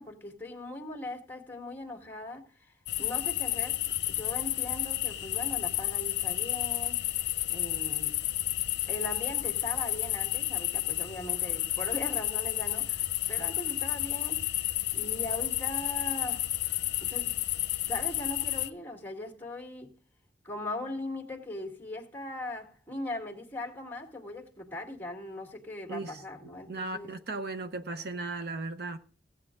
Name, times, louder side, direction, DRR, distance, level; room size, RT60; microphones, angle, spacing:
voice 1, 0.0-3.8 4.1-7.0 7.5-8.2 8.9-14.7 14.9-16.5 17.0-17.4 17.9-19.9 20.4-27.2, left 2 dB, 10° left, 1.9 m, -40 dB
sound 1, 2.9-18.7, left 15 dB, 70° left, 0.7 m, -31 dB
voice 2, 26.4-29.0, right 3 dB, 65° right, 0.9 m, -36 dB
16.0 x 8.5 x 3.8 m
head